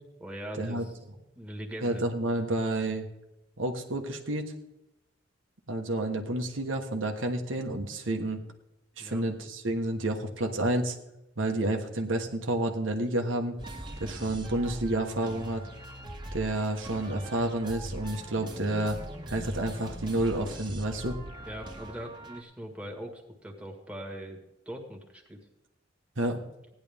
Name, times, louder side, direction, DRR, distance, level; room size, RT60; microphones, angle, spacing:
voice 1, 0.2-1.0 1.4-2.0 9.0-9.3 19.4-19.5 21.5-24.4 24.7-25.4, equal, 5° right, 0 dB, 1.7 m, -41 dB
voice 2, 1.8-3.0 3.6-4.5 5.7-8.4 9.0-11.0 11.4-13.5 14.0-15.6 16.3-19.0 19.3-21.2 26.2-26.4, right 1 dB, 90° right, 3 dB, 1.4 m, -30 dB
sound 1, 13.6-22.4, right 1 dB, 25° right, 1.7 m, -41 dB
16.5 x 10.5 x 3.6 m, 0.91 s
head